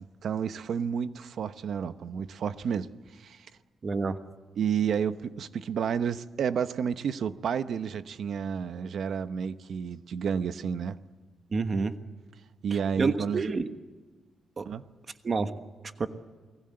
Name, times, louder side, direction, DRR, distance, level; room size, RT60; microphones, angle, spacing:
voice 1, 0.0-3.5 4.6-11.0 12.6-13.4 14.6-14.8, right 7 dB, 55° right, 12 dB, 0.9 m, -31 dB
voice 2, 3.8-4.2 11.5-11.9 13.0-13.7 14.6-14.7 15.2-15.5 16.0-16.1, right 4 dB, 30° right, 9 dB, 1.2 m, -28 dB
29.0 x 20.5 x 7.8 m, 1.3 s
wide cardioid pair, 175°, 0 cm